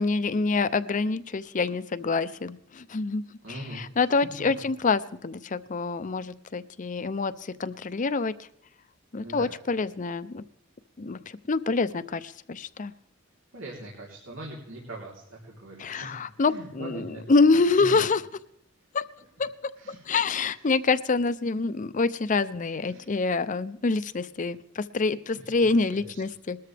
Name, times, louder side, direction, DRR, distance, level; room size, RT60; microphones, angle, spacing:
voice 1, 0.0-7.3 7.6-8.3 9.1-10.4 11.0-11.2 11.5-12.9 15.8-18.2 18.9-19.1 19.4-26.6, left 4 dB, 40° left, 15 dB, 0.6 m, -26 dB
voice 2, 3.4-3.8 9.2-9.5 13.5-17.2 17.8-18.0 19.8-20.0 22.9-23.1 25.3-26.2, right 1 dB, 90° right, -3 dB, 3.4 m, -41 dB
20.5 x 13.5 x 3.4 m, 0.76 s
head